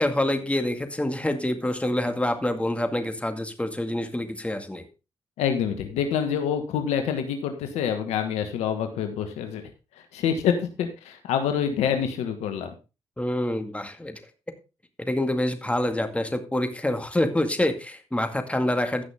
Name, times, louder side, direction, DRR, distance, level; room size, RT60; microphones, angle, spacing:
voice 1, 0.0-4.8 13.2-14.2 15.0-19.0, left 1 dB, 10° left, 7 dB, 2.0 m, -26 dB
voice 2, 5.4-9.7 10.0-12.7, left 8 dB, 80° left, 6 dB, 1.4 m, -26 dB
15.5 x 6.1 x 3.6 m, 0.29 s
hypercardioid pair, 45°, 11 cm